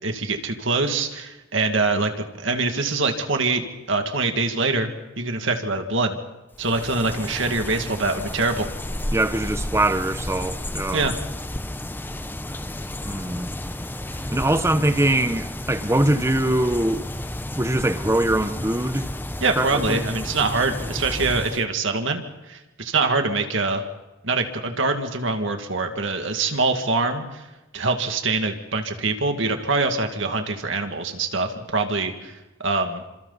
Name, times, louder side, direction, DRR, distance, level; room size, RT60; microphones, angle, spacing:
voice 1, 0.0-4.9 5.2-6.2 6.6-8.7 10.9-11.2 19.4-23.8 24.2-27.5 27.7-33.0, right 3 dB, 65° right, 2.2 m, -24 dB
sound 1, 6.5-21.6, left 1 dB, 10° left, 0.8 m, -32 dB
voice 2, 9.1-11.1 13.0-13.5 14.2-17.0 17.5-19.1 19.6-20.1, right 1 dB, 15° right, 1.0 m, -22 dB
29.0 x 27.0 x 4.1 m
head